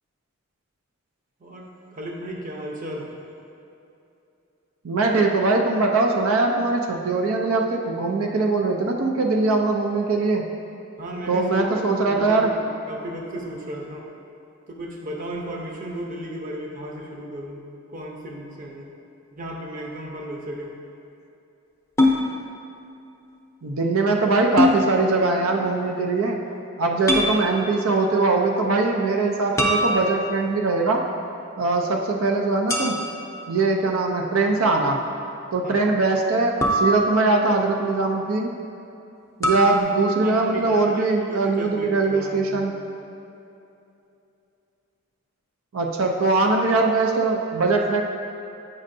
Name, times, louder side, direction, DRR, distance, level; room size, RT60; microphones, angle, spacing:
voice 1, 1.4-3.2 11.0-11.8 12.1-14.1 14.7-17.6 17.9-18.9 19.3-20.8 26.5-26.6 27.2-27.3 35.6-35.9 39.8-42.7, right 1 dB, 40° right, -1 dB, 0.7 m, -35 dB
voice 2, 4.8-10.4 11.3-12.5 23.6-26.4 26.8-31.0 31.6-33.0 33.5-35.0 35.5-38.5 39.4-42.8 45.7-48.0, right 3 dB, 90° right, 1 dB, 0.5 m, -21 dB
sound 1, 22.0-22.2 24.6-24.8 27.1-27.3 29.6-30.5 32.7-33.3 36.6-37.5 39.4-39.8, left 1 dB, 15° left, 0.5 m, -22 dB
8.6 x 5.3 x 2.6 m, 2.8 s
head